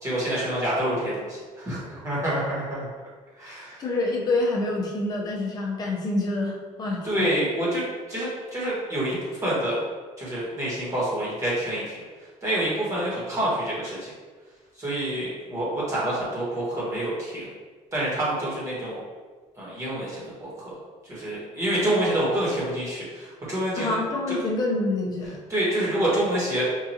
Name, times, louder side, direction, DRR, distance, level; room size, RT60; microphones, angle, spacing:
voice 1, 0.0-2.9 3.4-3.8 7.0-9.8 10.2-11.8 12.4-14.1 14.7-17.5 17.9-19.0 19.6-20.7 21.0-24.0 24.3-24.4 25.5-26.6, right 1 dB, 25° right, -7 dB, 1.4 m, -27 dB
voice 2, 3.8-7.3 23.8-25.4, left 2 dB, 30° left, -1 dB, 0.6 m, -27 dB
4.6 x 2.5 x 2.8 m, 1.4 s
cardioid pair, 160°, 13 cm